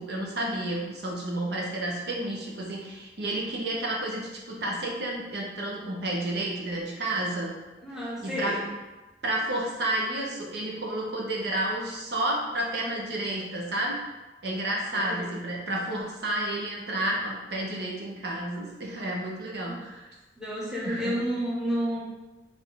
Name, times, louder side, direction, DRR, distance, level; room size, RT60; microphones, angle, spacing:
voice 1, 0.0-7.5 8.2-8.5 9.2-14.0 14.4-20.0 20.8-21.1, right 1 dB, 65° right, -2 dB, 1.0 m, -31 dB
voice 2, 7.8-8.7 14.9-15.4 19.7-19.9 20.4-22.0, equal, 5° right, -7 dB, 1.1 m, -31 dB
4.3 x 3.5 x 3.4 m, 1.1 s
head